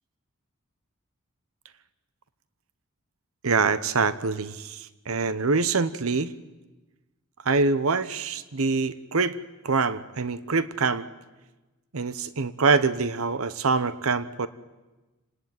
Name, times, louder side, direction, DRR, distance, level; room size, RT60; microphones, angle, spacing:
voice 1, 3.4-6.3 7.4-9.4 9.6-11.0 11.9-14.5, right 4 dB, 80° right, 14 dB, 0.9 m, -25 dB
29.0 x 19.0 x 9.5 m, 1.1 s
head